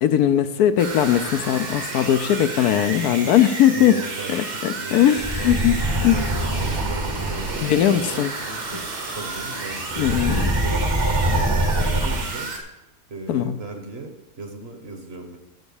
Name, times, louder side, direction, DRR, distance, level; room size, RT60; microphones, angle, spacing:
voice 1, 0.0-4.0 4.3-5.8 6.0-6.2 7.6-8.3 10.0-10.5 13.3-13.6, left 11 dB, 75° left, 11 dB, 1.1 m, -19 dB
sound 1, 0.8-12.6, right 3 dB, 75° right, 2.2 m, -32 dB
voice 2, 3.7-12.8 13.1-15.4, right 3 dB, 45° right, 6 dB, 1.2 m, -37 dB
sound 2, 5.2-7.7 9.7-12.2, right 1 dB, 20° right, 0.8 m, -24 dB
12.0 x 4.4 x 7.1 m, 0.98 s
omnidirectional pair, 1.7 m